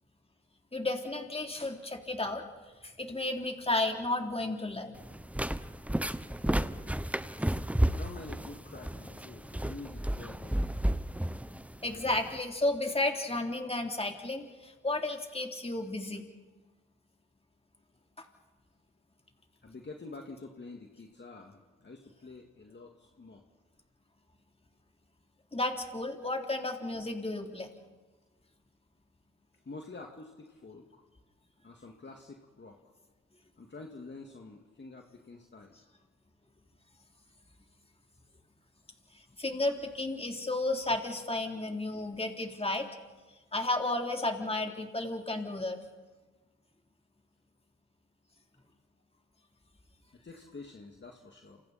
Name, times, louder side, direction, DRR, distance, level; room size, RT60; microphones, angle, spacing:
voice 1, 0.7-2.4 2.8-5.0 11.8-16.2 25.5-27.7 39.1-42.9 43.5-45.8, left 2 dB, 20° left, 3 dB, 3.6 m, -33 dB
sound 1, 5.0-12.4, right 1 dB, 5° right, 0.9 m, -32 dB
voice 2, 7.9-10.7 19.6-23.4 29.7-31.0 31.6-32.8 33.6-35.8 48.2-48.3 50.1-51.6, left 3 dB, 35° left, 2 dB, 2.3 m, -48 dB
28.5 x 27.0 x 4.4 m, 1.2 s
supercardioid pair, 50°, 30 cm